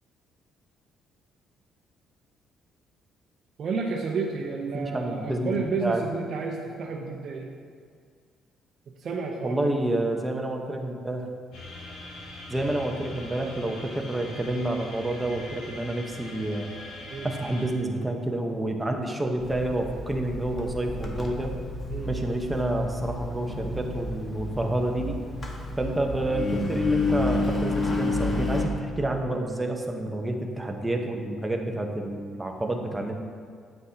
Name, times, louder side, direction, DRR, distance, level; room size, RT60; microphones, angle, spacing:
voice 1, 3.6-7.5 9.0-9.7 17.1-17.3 21.9-22.1, right 4 dB, 55° right, -1 dB, 0.8 m, -31 dB
voice 2, 4.7-6.0 9.4-11.3 12.5-16.7 17.2-21.5 22.1-25.2 25.8-33.2, right 1 dB, 15° right, 2 dB, 1.1 m, -29 dB
sound 1, 11.5-17.7, left 2 dB, 80° left, 1.9 m, -42 dB
Engine, 19.4-28.7, left 2 dB, 30° left, 1.5 m, -30 dB
9.3 x 7.9 x 2.9 m, 2.1 s
cardioid pair, 80°, 0 cm